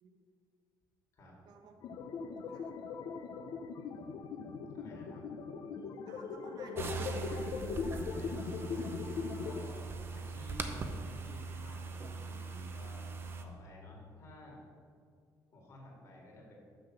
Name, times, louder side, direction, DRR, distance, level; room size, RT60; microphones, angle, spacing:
voice 1, 1.5-2.8 6.1-7.8 11.0-11.2 11.7-11.9, right 4 dB, 65° right, 4 dB, 0.9 m, -56 dB
sound 1, 1.8-9.7, left 5 dB, 60° left, 0.6 m, -40 dB
voice 2, 4.7-5.3 8.1-14.6 15.5-16.5, equal, 45° left, -2 dB, 2.3 m, -53 dB
sound 2, 6.8-13.4, right 4 dB, 30° right, 0.7 m, -41 dB
6.6 x 6.5 x 6.2 m, 2.3 s
cardioid pair, 150°, 7 cm